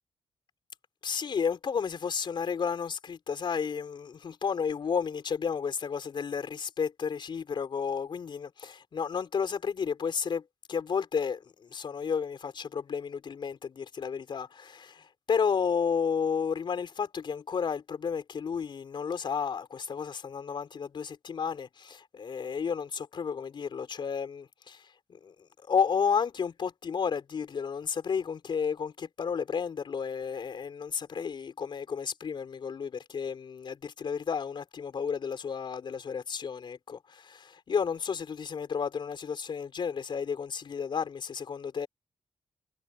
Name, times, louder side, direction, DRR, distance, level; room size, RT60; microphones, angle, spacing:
voice 1, 1.0-25.3 25.6-41.9, left 6 dB, 50° left, 4.4 m, -32 dB
cardioid pair, 130°, 10 cm